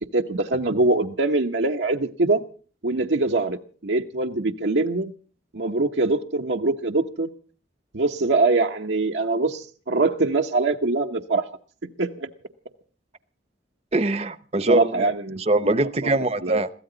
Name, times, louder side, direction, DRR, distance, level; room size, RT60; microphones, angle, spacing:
voice 1, 0.1-2.4 2.8-5.1 5.5-7.3 7.9-11.5 11.8-12.3 14.7-15.4 16.0-16.2 16.4-16.6, right 3 dB, 80° right, 0.9 m, -23 dB
voice 2, 13.9-16.7, right 2 dB, 35° right, 0.8 m, -23 dB
22.5 x 16.0 x 3.9 m
head